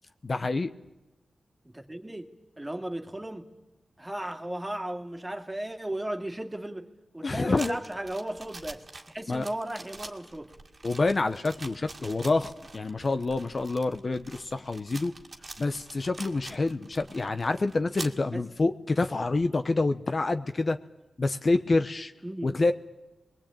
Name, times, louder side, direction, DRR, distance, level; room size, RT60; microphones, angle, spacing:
voice 1, 0.2-0.7 7.2-7.8 9.3-9.5 10.8-15.1 15.6-20.8 21.2-22.1 22.4-22.7, left 3 dB, 45° left, 8 dB, 0.9 m, -27 dB
voice 2, 1.6-2.3 2.6-3.5 4.0-10.5 18.3-18.4 22.2-22.5, right 1 dB, 15° right, 5 dB, 2.3 m, -36 dB
sound 1, 7.6-18.2, right 2 dB, 45° right, 2.0 m, -45 dB
24.5 x 20.5 x 8.9 m, 1.0 s
cardioid pair, 65°, 0 cm